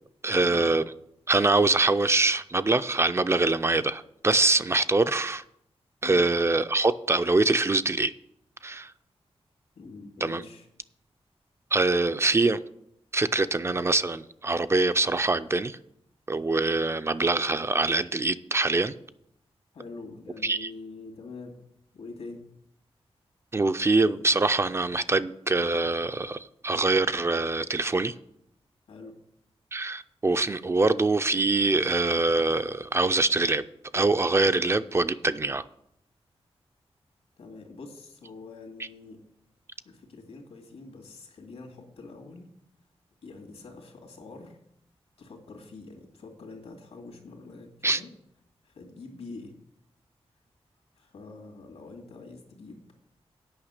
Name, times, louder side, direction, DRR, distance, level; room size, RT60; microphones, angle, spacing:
voice 1, 0.2-0.9 1.3-5.4 6.0-8.1 8.6-8.9 10.2-10.4 11.7-12.6 13.1-15.8 16.3-18.9 20.4-20.7 23.5-28.1 29.7-33.6 33.9-35.6 47.8-48.0, right 3 dB, 25° right, 12 dB, 0.4 m, -24 dB
voice 2, 9.8-10.7 19.7-21.6 21.9-22.5 28.9-29.2 37.4-39.2 39.8-42.5 43.2-44.6 45.2-48.1 48.6-49.5 51.0-52.9, left 3 dB, 85° left, 2 dB, 2.3 m, -45 dB
8.8 x 5.6 x 8.1 m, 0.75 s
wide cardioid pair, 145°, 11 cm